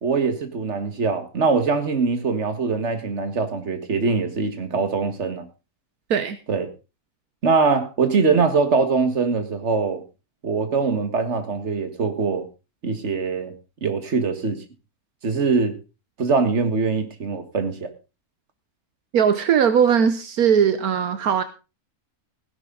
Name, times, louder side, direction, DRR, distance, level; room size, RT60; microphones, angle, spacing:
voice 1, 0.0-5.4 6.5-6.7 7.4-10.0 10.4-12.5 12.8-13.5 13.8-14.6 15.2-15.7 16.2-17.9, right 4 dB, 50° right, 2.0 m, -22 dB
voice 2, 19.1-21.4, right 7 dB, 75° right, 1.4 m, -19 dB
16.5 x 11.0 x 3.9 m
omnidirectional pair, 1.6 m